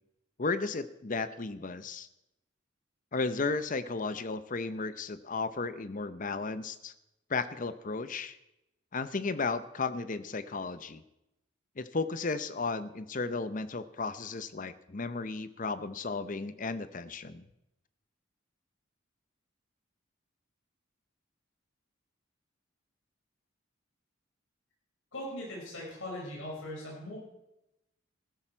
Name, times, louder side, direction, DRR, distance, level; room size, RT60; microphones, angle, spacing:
voice 1, 0.4-2.1 3.1-6.9 7.3-8.4 8.9-11.0 11.8-17.5, left 4 dB, 40° left, 14 dB, 0.7 m, -34 dB
voice 2, 25.1-27.2, left 1 dB, 75° left, -3 dB, 5.4 m, -40 dB
15.5 x 13.5 x 4.5 m, 0.89 s
head